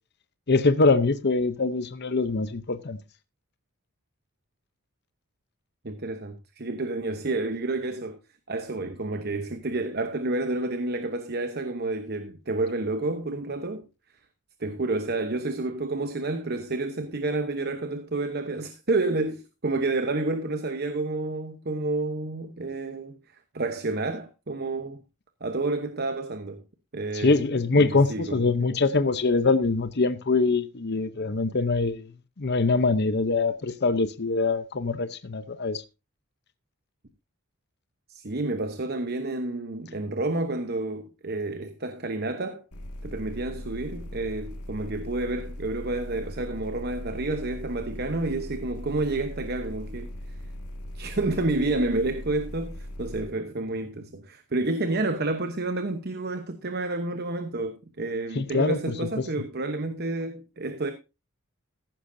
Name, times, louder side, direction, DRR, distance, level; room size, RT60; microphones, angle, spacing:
voice 1, 0.5-3.0 27.1-32.1 32.4-35.8 58.4-58.9, left 3 dB, 50° left, 0.7 m, -23 dB
voice 2, 5.8-8.2 8.5-13.8 14.6-23.2 23.5-25.0 25.4-26.6 26.9-28.8 38.1-42.6 43.0-50.1 50.9-60.9, right 2 dB, 45° right, 0.9 m, -30 dB
sound 1, 42.7-53.3, left 1 dB, 85° left, 1.9 m, -39 dB
15.0 x 11.5 x 2.7 m
head